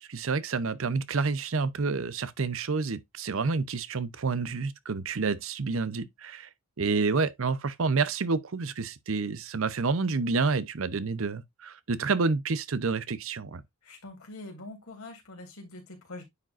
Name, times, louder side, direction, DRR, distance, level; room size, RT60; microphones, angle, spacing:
voice 1, 0.0-6.5 6.8-13.6, right 4 dB, 65° right, 0.6 m, -29 dB
voice 2, 13.8-16.2, left 2 dB, 75° left, 3.0 m, -44 dB
9.5 x 5.0 x 2.5 m
head